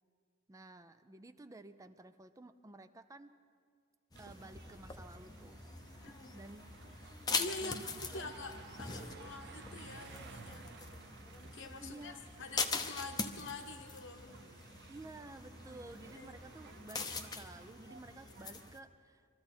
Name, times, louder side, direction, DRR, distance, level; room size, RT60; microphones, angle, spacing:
voice 1, 0.5-3.4 4.2-5.6 5.9-6.6 7.6-8.4 11.8-12.2 14.9-19.3, right 2 dB, 15° right, 10 dB, 0.4 m, -53 dB
sound 1, 4.1-18.8, left 4 dB, 20° left, 0.7 m, -43 dB
sound 2, 4.2-18.8, right 4 dB, 55° right, 0.7 m, -56 dB
voice 2, 6.0-6.4 7.3-7.8 8.1-10.7 11.5-14.3 16.2-16.3, left 3 dB, 60° left, 5 dB, 1.1 m, -46 dB
23.5 x 14.0 x 4.4 m, 2.1 s
head